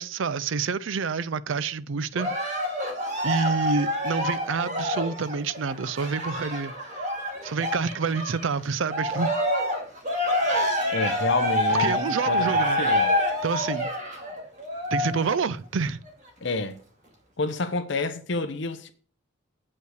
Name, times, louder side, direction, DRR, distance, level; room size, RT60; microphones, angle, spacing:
voice 1, 0.0-2.3 3.2-7.0 7.4-9.3 11.8-12.8 13.4-13.9 14.9-16.0, right 5 dB, 65° right, 0.5 m, -28 dB
Cheering, 2.2-8.5 8.9-15.4 16.1-16.2, left 1 dB, 35° right, 2.2 m, -27 dB
voice 2, 10.9-13.1 16.4-16.8 17.4-18.9, left 3 dB, 60° left, 0.9 m, -29 dB
8.1 x 5.5 x 6.4 m
head